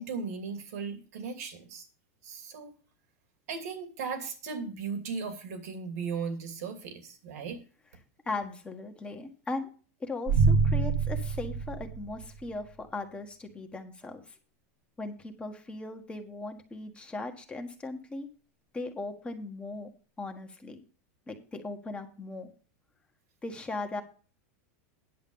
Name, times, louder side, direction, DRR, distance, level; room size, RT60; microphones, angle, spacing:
voice 1, 0.0-1.9 2.2-2.7 3.5-7.6, right 5 dB, 80° right, 6 dB, 2.7 m, -37 dB
voice 2, 8.2-9.7 10.0-14.4 15.0-18.3 18.7-19.9 20.2-20.8 21.3-22.5 23.4-24.0, left 3 dB, 15° left, 5 dB, 1.4 m, -38 dB
sound 1, 10.3-12.5, right 5 dB, 45° right, 1.7 m, -26 dB
10.5 x 6.3 x 5.5 m, 0.37 s
supercardioid pair, 140°, 8 cm